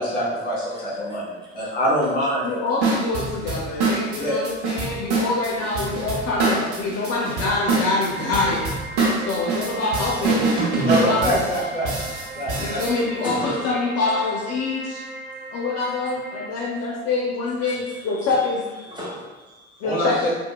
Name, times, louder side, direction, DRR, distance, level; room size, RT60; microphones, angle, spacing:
voice 1, 0.0-2.5 4.1-4.4 10.8-11.9 12.3-12.8 19.8-20.3, equal, 25° left, -6 dB, 1.3 m, -24 dB
voice 2, 0.7-1.6 10.6-10.7 11.6-11.7 12.1-12.8 13.2-13.7 15.4-15.5 15.8-15.9 17.5-20.3, equal, 15° right, -7 dB, 0.8 m, -40 dB
voice 3, 2.4-8.6 9.3-11.4 12.6-15.0 15.5-18.6 19.8-20.3, left 3 dB, 50° left, -4 dB, 0.5 m, -25 dB
sound 1, 2.8-12.9, right 3 dB, 85° right, 0.7 m, -25 dB
sound 2, 8.1-16.5, right 2 dB, 50° right, 0.7 m, -38 dB
2.8 x 2.2 x 2.2 m, 1.2 s
hypercardioid pair, 60°, 34 cm